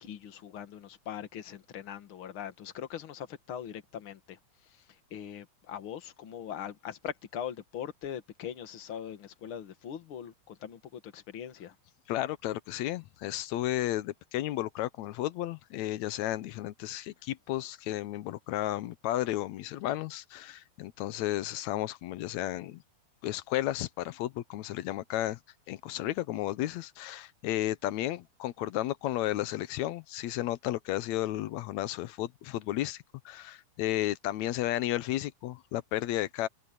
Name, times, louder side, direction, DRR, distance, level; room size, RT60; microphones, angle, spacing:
voice 1, 0.0-11.8, left 9 dB, 50° left, 2.2 m, -41 dB
voice 2, 12.1-22.8 23.2-25.4 25.7-36.5, left 14 dB, 75° left, 2.0 m, -33 dB
omnidirectional pair, 3.5 m